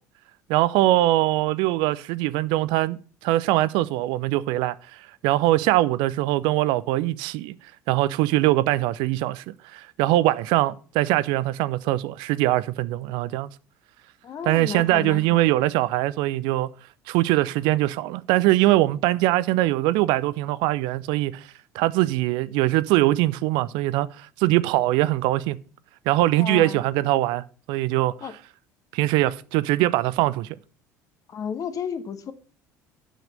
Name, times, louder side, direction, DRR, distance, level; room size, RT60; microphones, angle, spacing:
voice 1, 0.5-4.8 5.2-7.5 7.9-9.4 9.7-13.5 14.4-16.7 17.1-21.5 21.7-25.6 26.1-28.3 28.9-30.5, right 17 dB, 55° right, 0.4 m, -22 dB
voice 2, 14.2-15.4 26.4-26.8 28.2-28.3 31.3-32.3, left 7 dB, 40° left, 1.1 m, -32 dB
8.0 x 5.9 x 6.4 m
figure-of-eight pair, 60°, 9 cm